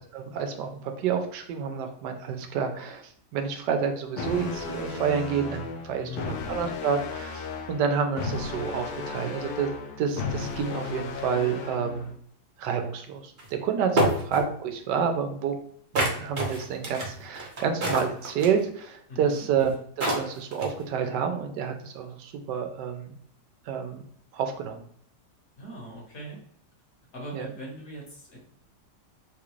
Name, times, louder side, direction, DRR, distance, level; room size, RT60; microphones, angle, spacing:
voice 1, 0.1-9.7 10.0-12.1 12.6-13.3 13.6-15.5 15.9-23.2 23.7-24.0 24.3-24.8 27.3-27.5, right 7 dB, 90° right, 5 dB, 1.2 m, -29 dB
sound 1, 4.1-12.1, left 5 dB, 85° left, 1.2 m, -35 dB
voice 2, 6.0-6.3 13.9-14.2 19.1-19.4 25.6-26.4 27.1-28.4, equal, 55° left, -2 dB, 1.5 m, -41 dB
sound 2, 13.4-13.5 14.0-14.4 16.0-18.6 19.6-19.7 20.0-20.8, right 1 dB, 45° right, 0.7 m, -26 dB
3.6 x 2.5 x 3.0 m, 0.63 s
omnidirectional pair, 1.8 m